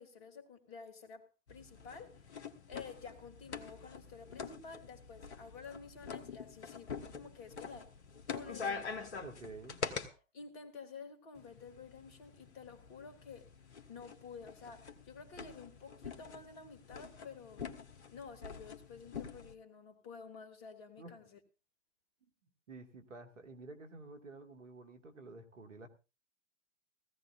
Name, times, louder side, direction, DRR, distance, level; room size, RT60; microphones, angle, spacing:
voice 1, 0.0-2.3 2.7-7.9 8.3-9.2 9.8-13.5 13.9-17.7 18.1-21.4, left 5 dB, 40° left, 2.3 m, -51 dB
sound 1, 1.5-10.1 11.3-19.5, left 5 dB, 60° left, 1.4 m, -46 dB
voice 2, 9.2-9.8 21.0-21.1 22.7-25.9, right 3 dB, 70° right, 2.2 m, -50 dB
18.5 x 15.0 x 2.6 m
figure-of-eight pair, 110°, 38 cm